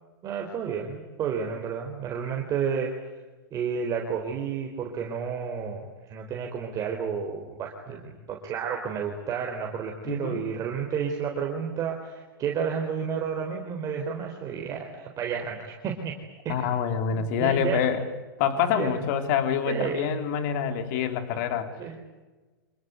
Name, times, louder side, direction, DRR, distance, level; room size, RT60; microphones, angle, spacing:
voice 1, 0.2-2.9 3.5-16.1 16.4-16.7 17.1-17.9 18.7-18.9 19.7-20.1 21.8-22.0, right 7 dB, 30° right, 1 dB, 4.2 m, -31 dB
voice 2, 10.0-10.4 16.5-18.0 18.4-21.7, left 7 dB, 50° left, 8 dB, 3.5 m, -26 dB
26.5 x 22.0 x 9.3 m, 1.3 s
hypercardioid pair, 130°, 12 cm